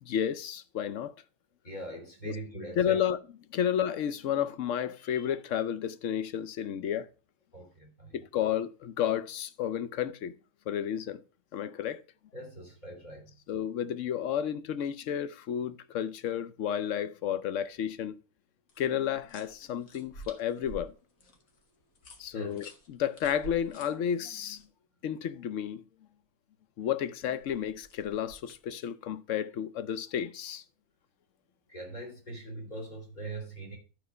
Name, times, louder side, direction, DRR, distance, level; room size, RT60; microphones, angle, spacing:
voice 1, 0.0-1.1 2.2-2.4 2.8-3.2 3.5-7.1 8.1-10.3 10.7-11.2 11.5-12.0 13.5-18.2 18.8-20.9 22.2-24.6 25.0-25.8 26.8-30.6, left 9 dB, 65° left, 0.9 m, -32 dB
voice 2, 1.6-3.0 7.5-8.2 12.3-13.3 22.3-22.6 31.7-33.8, right 2 dB, 30° left, 3.2 m, -41 dB
sound 1, 18.7-24.6 27.2-28.7, right 2 dB, 80° left, 2.0 m, -50 dB
11.5 x 4.3 x 5.5 m
omnidirectional pair, 1.5 m